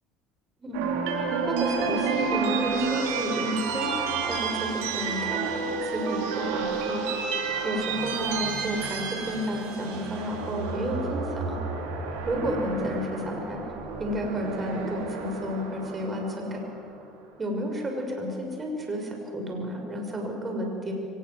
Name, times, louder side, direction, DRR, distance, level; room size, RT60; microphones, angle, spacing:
sound 1, 0.7-16.9, right 5 dB, 75° right, 3.9 m, -30 dB
voice 1, 1.5-7.0 7.6-11.6 12.2-13.6 14.0-16.6 17.4-20.9, equal, 25° right, 2 dB, 6.2 m, -31 dB
23.5 x 20.0 x 8.1 m, 2.6 s
hypercardioid pair, 80°, 0 cm